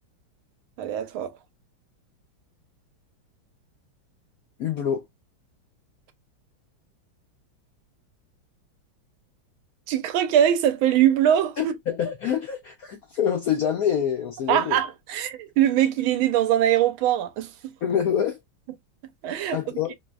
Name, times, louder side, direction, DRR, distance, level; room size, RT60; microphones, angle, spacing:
voice 1, 0.8-1.3 9.9-11.8 14.5-17.7 19.2-19.6, right 11 dB, 85° right, 1.4 m, -22 dB
voice 2, 4.6-5.1 11.6-14.8 17.8-18.4 19.5-19.9, left 8 dB, 75° left, 0.8 m, -26 dB
3.4 x 2.0 x 2.2 m
omnidirectional pair, 2.2 m